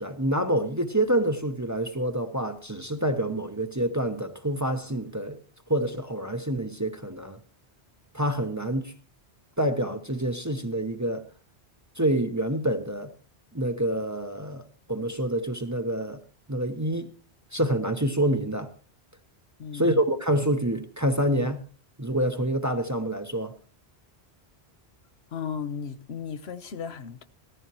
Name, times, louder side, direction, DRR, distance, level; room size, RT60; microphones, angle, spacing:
voice 1, 0.0-5.4 5.7-7.4 8.1-8.9 9.6-11.2 12.0-13.1 13.5-14.6 14.9-16.2 16.5-17.1 17.5-18.7 19.7-21.6 22.0-23.5, right 1 dB, 20° right, 0.8 m, -27 dB
voice 2, 19.6-20.0 25.3-27.2, left 7 dB, 75° left, 1.1 m, -35 dB
17.0 x 14.5 x 3.0 m
omnidirectional pair, 1.1 m